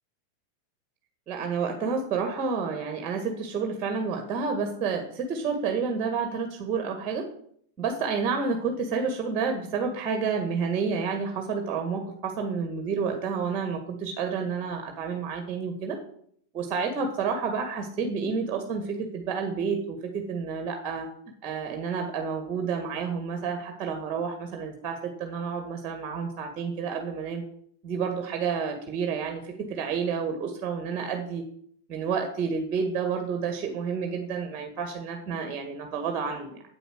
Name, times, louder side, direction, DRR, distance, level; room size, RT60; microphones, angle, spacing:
voice 1, 1.3-7.2 7.8-16.0 16.5-21.1 21.4-27.4 27.8-31.4 31.9-36.6, right 5 dB, 30° right, 5 dB, 1.8 m, -30 dB
9.1 x 8.6 x 6.2 m, 0.64 s
figure-of-eight pair, 90°, 0 cm